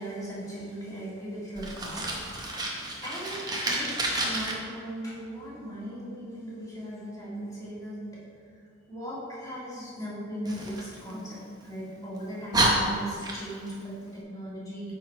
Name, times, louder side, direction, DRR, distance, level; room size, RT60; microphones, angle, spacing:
voice 1, 0.0-8.3 8.9-14.9, right 1 dB, 15° left, -7 dB, 1.8 m, -38 dB
Fire, 1.5-4.5 10.4-11.7 12.2-12.3 12.5-13.7, right 1 dB, 20° right, 0.8 m, -29 dB
9.4 x 3.9 x 4.4 m, 2.2 s
head